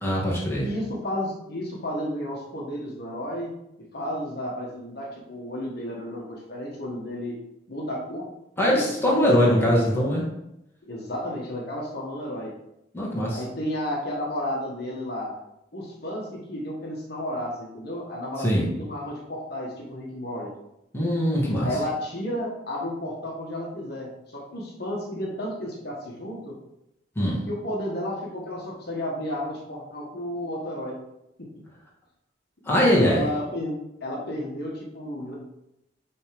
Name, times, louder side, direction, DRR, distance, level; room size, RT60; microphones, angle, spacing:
voice 1, 0.0-0.7 8.6-10.3 12.9-13.4 18.4-18.7 20.9-21.7 27.1-27.4 32.6-33.3, equal, 10° left, -5 dB, 1.6 m, -22 dB
voice 2, 0.6-3.5 3.9-7.4 7.7-8.3 8.6-9.1 9.4-9.7 10.9-12.5 13.3-15.4 15.7-20.5 21.6-26.6 27.5-31.0 31.4-31.5 32.6-35.3, left 1 dB, 55° left, -3 dB, 1.3 m, -32 dB
6.3 x 3.5 x 5.1 m, 0.86 s
head